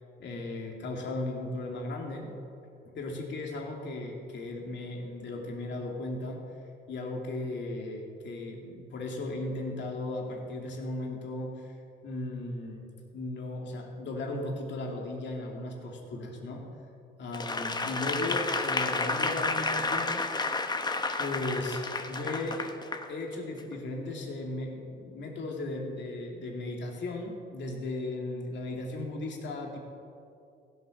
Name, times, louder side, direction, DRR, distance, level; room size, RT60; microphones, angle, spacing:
voice 1, 0.2-2.3 2.8-6.4 6.9-11.7 12.0-16.7 17.2-20.3 21.2-22.7 23.1-29.8, left 2 dB, 65° left, 1 dB, 2.5 m, -36 dB
Applause / Crowd, 17.3-23.1 23.6-23.7, left 3 dB, 20° left, 1.0 m, -31 dB
15.5 x 8.0 x 6.4 m, 2.5 s
cardioid pair, 90°, 20 cm